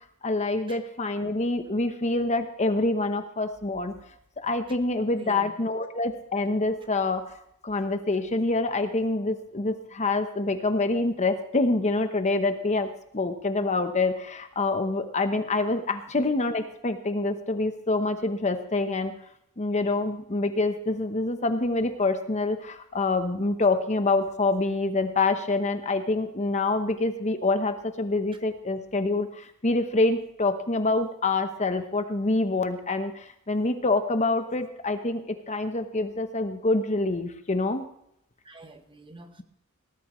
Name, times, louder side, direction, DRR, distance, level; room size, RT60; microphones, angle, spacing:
voice 1, 0.2-4.0 4.4-7.3 7.6-19.2 19.6-37.9, left 2 dB, 30° left, 8 dB, 1.0 m, -26 dB
voice 2, 5.2-5.5 38.4-39.4, right 1 dB, 25° right, 7 dB, 1.2 m, -46 dB
19.0 x 13.0 x 3.2 m, 0.74 s
head